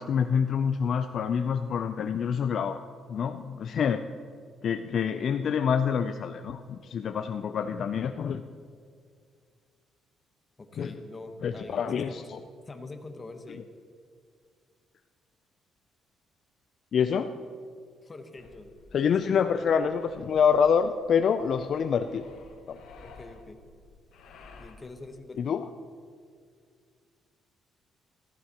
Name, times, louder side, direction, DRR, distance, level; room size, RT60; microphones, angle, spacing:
voice 1, 0.0-4.1 4.6-8.4 10.8-10.9 11.4-12.4 16.9-17.3 18.9-22.2 22.7-22.8 25.4-25.6, left 7 dB, 55° left, 8 dB, 0.4 m, -26 dB
voice 2, 10.6-12.3 12.7-13.7 18.0-18.7 23.0-23.6 24.6-25.4, left 3 dB, 25° left, 6 dB, 1.0 m, -44 dB
sound 1, 18.4-24.8, left 4 dB, 85° left, 1.4 m, -53 dB
15.5 x 13.5 x 2.9 m, 2.1 s
cardioid pair, 120°, 0 cm